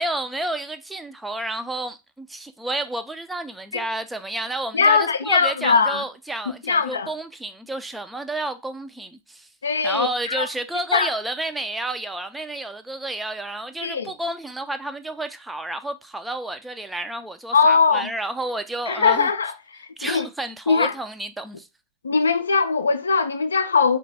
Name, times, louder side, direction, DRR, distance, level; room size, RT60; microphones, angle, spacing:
voice 1, 0.0-9.5 9.8-19.3 20.0-21.7, right 1 dB, 5° right, 0.4 m, -30 dB
voice 2, 4.7-6.0 6.7-7.1 9.6-10.5 10.9-11.1 13.8-14.1 17.5-18.1 18.9-20.3 20.7-20.9 22.0-24.0, left 5 dB, 75° left, 0.4 m, -20 dB
3.9 x 2.2 x 3.3 m
figure-of-eight pair, 90°, 0 cm